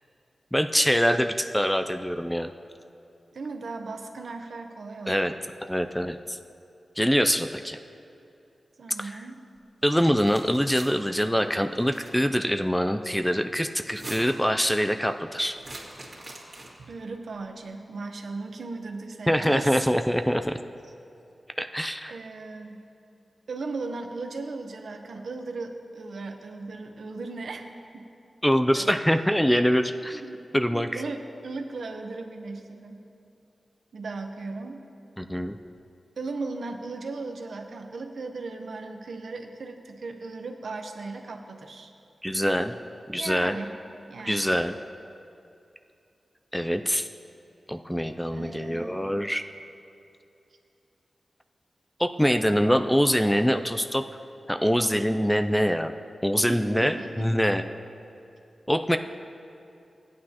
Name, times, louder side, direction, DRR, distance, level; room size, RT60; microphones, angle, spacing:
voice 1, 0.5-2.5 5.1-5.3 5.6-6.4 7.0-7.8 9.0-9.2 9.8-15.6 19.3-20.5 21.6-22.1 28.4-30.2 30.5-31.0 35.2-35.6 42.2-42.7 43.1-43.6 44.3-44.7 46.5-47.1 47.7-49.4 52.0-54.0 54.5-55.9 56.2-57.6 58.7-59.0, equal, 5° left, 7 dB, 0.3 m, -24 dB
voice 2, 3.3-5.4 8.8-9.4 16.9-19.9 22.1-22.8 23.5-27.6 27.9-28.1 28.7-28.9 30.1-30.4 30.7-33.0 33.9-34.8 36.2-41.9 43.1-43.8 44.1-44.5 48.3-49.1 56.5-57.4, right 3 dB, 70° right, 5 dB, 0.8 m, -37 dB
sound 1, 9.9-10.9 11.7-12.2 13.8-14.5 15.5-16.9, right 2 dB, 35° right, 2.0 m, -43 dB
16.5 x 9.5 x 2.9 m, 2.7 s
wide cardioid pair, 145°, 0 cm